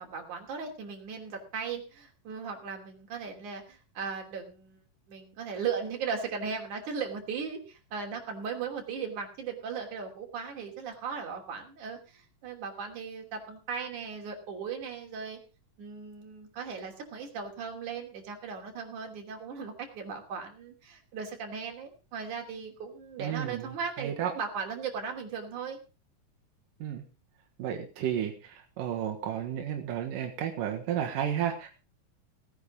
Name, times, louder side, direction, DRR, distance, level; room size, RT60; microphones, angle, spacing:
voice 1, 0.0-4.8 5.1-15.4 15.8-25.8, right 6 dB, 65° right, 2 dB, 4.3 m, -37 dB
voice 2, 23.2-23.7 24.0-24.3 26.8-27.0 27.6-31.7, right 9 dB, 90° right, 2 dB, 3.1 m, -32 dB
17.5 x 9.7 x 5.2 m, 0.33 s
omnidirectional pair, 3.7 m